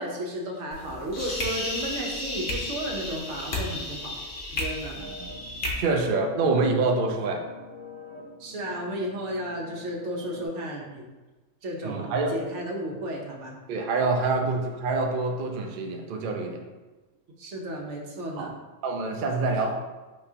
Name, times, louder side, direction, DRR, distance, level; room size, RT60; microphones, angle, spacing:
voice 1, 0.0-4.2 4.5-5.0 8.4-11.1 11.6-13.6 17.4-18.5 19.4-19.5, right 1 dB, 60° right, -1 dB, 1.0 m, -33 dB
sound 1, 0.7-5.7, left 2 dB, 45° left, 0.8 m, -33 dB
sound 2, 5.0-10.5, left 2 dB, 65° left, 1.2 m, -45 dB
voice 2, 5.0-5.3 5.8-7.4 11.8-12.3 13.7-16.6 18.4-18.5 18.8-19.8, right 3 dB, 80° right, 3 dB, 0.4 m, -26 dB
5.8 x 2.8 x 2.8 m, 1.2 s
omnidirectional pair, 1.4 m